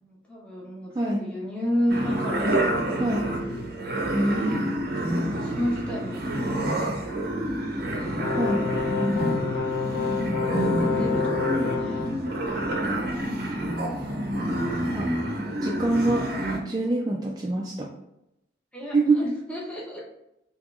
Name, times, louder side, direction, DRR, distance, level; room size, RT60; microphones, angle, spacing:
voice 1, 0.0-3.2 3.5-3.8 4.8-6.1 6.4-6.9 7.7-8.1 10.8-12.4 18.7-20.0, equal, 5° left, -4 dB, 0.7 m, -32 dB
sound 1, 1.9-16.6, right 1 dB, 55° right, 0.6 m, -28 dB
voice 2, 4.1-4.7 8.4-8.6 10.3-10.7 14.9-15.1 15.6-16.2 16.7-17.9 18.9-19.3, right 2 dB, 20° right, -3 dB, 0.3 m, -25 dB
sound 2, 8.2-12.1, left 5 dB, 55° left, 0.5 m, -28 dB
3.6 x 2.9 x 2.4 m, 0.83 s
head